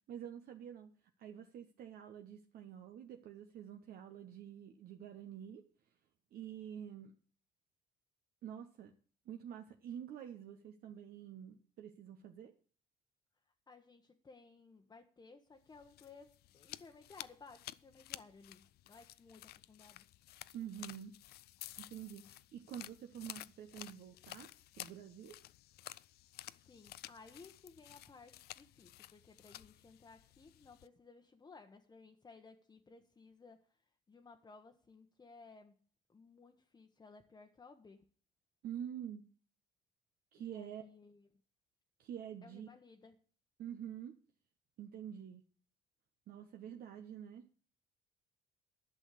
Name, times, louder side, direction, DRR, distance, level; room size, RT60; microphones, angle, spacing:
voice 1, 0.1-0.9 1.2-5.6 6.3-7.1 8.4-8.9 9.2-12.5 20.5-21.2 21.8-24.5 24.8-25.4 38.6-39.2 40.3-40.8 42.0-42.7 43.6-44.1 44.8-45.4 46.3-47.4, right 9 dB, 60° right, 5 dB, 1.0 m, -47 dB
voice 2, 13.7-20.1 26.5-33.8 34.1-35.7 36.1-38.0 40.4-41.4 42.4-43.1, left 4 dB, 25° left, 3 dB, 1.0 m, -58 dB
sound 1, 15.7-30.9, left 15 dB, 70° left, 0.5 m, -53 dB
11.0 x 6.2 x 8.3 m, 0.41 s
cardioid pair, 110°, 17 cm